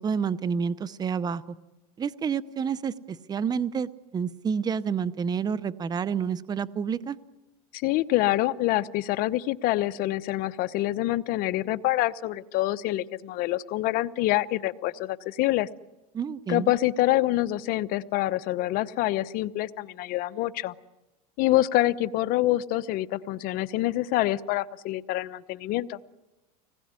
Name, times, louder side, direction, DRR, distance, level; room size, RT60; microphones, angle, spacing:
voice 1, 0.0-1.4 2.0-7.2 16.1-16.7, right 6 dB, 20° right, 16 dB, 0.8 m, -29 dB
voice 2, 7.7-15.7 16.5-20.7 21.4-26.0, left 16 dB, 50° left, 14 dB, 0.9 m, -26 dB
26.0 x 20.0 x 9.7 m, 1.1 s
supercardioid pair, 125°, 19 cm